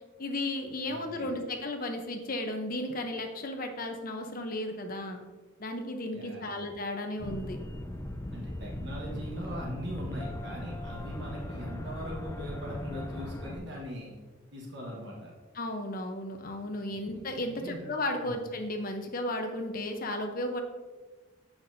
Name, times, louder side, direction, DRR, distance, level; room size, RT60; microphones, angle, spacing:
voice 1, 0.2-5.2 5.6-7.6 15.5-20.6, left 1 dB, 45° left, 4 dB, 0.7 m, -34 dB
voice 2, 0.9-1.3 6.1-6.5 8.3-14.1 14.5-15.3 17.5-17.9 18.2-18.3, equal, 55° right, -3 dB, 1.3 m, -40 dB
sound 1, 7.2-13.6, left 1 dB, 15° left, 0.4 m, -38 dB
7.5 x 5.8 x 2.6 m, 1.3 s
head